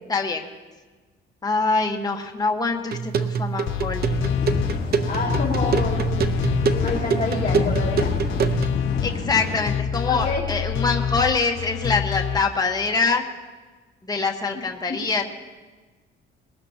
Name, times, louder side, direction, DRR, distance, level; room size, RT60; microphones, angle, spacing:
voice 1, 0.1-0.5 1.4-4.1 9.0-13.2 14.0-15.2, left 4 dB, 20° left, 2 dB, 1.4 m, -24 dB
sound 1, 2.9-8.8, right 6 dB, 50° right, 0.8 m, -25 dB
sound 2, 3.7-12.4, left 8 dB, 75° left, 0.8 m, -27 dB
sound 3, 4.1-9.7, left 4 dB, 55° left, 5.4 m, -29 dB
voice 2, 5.1-6.3 6.7-8.1 10.1-10.5 14.5-14.6, left 3 dB, 40° left, -5 dB, 2.7 m, -28 dB
21.0 x 19.5 x 2.9 m, 1.3 s
cardioid pair, 105°, 21 cm